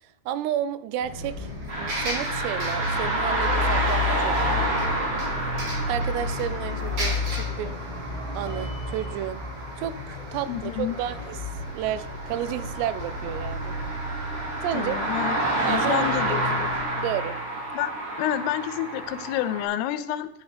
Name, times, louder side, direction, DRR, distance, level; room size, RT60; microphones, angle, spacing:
voice 1, 0.3-1.5 1.8-4.7 5.9-7.7 8.4-9.4 9.8-11.4 11.7-13.7 14.6-15.0 15.7-16.7 17.0-17.4, right 11 dB, 90° right, 14 dB, 2.8 m, -31 dB
Bus, 1.0-16.8, left 2 dB, 50° right, 5.1 m, -32 dB
sound 1, 1.7-19.6, right 2 dB, 35° right, 5.0 m, -30 dB
voice 2, 10.5-11.0 14.7-16.7 17.7-17.9 18.2-20.3, left 12 dB, 85° left, 13 dB, 2.5 m, -29 dB
14.5 x 8.5 x 3.3 m, 0.82 s
omnidirectional pair, 4.8 m